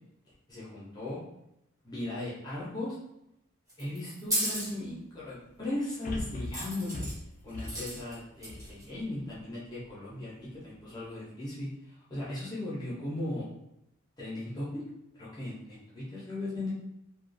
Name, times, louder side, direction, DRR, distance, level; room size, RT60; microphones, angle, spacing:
voice 1, 0.5-1.2 1.8-3.0 3.8-7.1 7.4-13.5 14.2-14.8 15.1-16.7, left 1 dB, 20° left, -8 dB, 0.7 m, -37 dB
sound 1, 3.7-4.7 6.5-7.1 7.6-8.1 8.4-8.8, right 1 dB, 15° right, 0.8 m, -33 dB
sound 2, 4.3-4.4 6.0-9.4 9.9-10.0, left 1 dB, 40° left, 0.3 m, -40 dB
2.4 x 2.3 x 2.5 m, 0.82 s
head